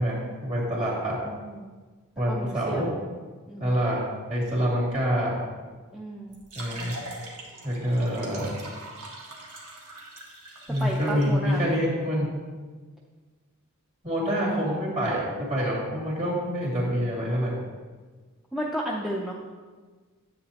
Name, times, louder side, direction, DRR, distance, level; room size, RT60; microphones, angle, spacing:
voice 1, 0.0-1.2 2.2-2.9 3.6-5.4 6.5-6.9 7.6-8.5 10.7-12.3 14.0-17.5, equal, 35° right, -5 dB, 2.7 m, -26 dB
voice 2, 1.2-1.7 2.3-2.9 3.5-3.8 5.9-6.4 10.8-11.6 18.5-19.4, equal, ahead, -3 dB, 0.6 m, -33 dB
sound 1, 6.3-11.2, right 2 dB, 80° right, 1.6 m, -42 dB
10.5 x 7.8 x 2.9 m, 1.4 s
head